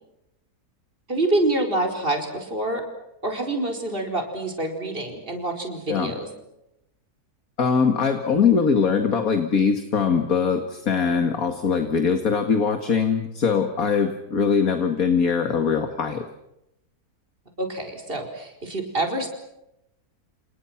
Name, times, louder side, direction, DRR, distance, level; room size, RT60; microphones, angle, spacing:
voice 1, 1.1-2.8 3.2-6.3 17.6-19.3, right 2 dB, 35° right, 4 dB, 4.9 m, -26 dB
voice 2, 7.6-16.3, left 6 dB, 60° left, 6 dB, 2.4 m, -22 dB
30.0 x 29.0 x 6.0 m, 0.87 s
omnidirectional pair, 1.7 m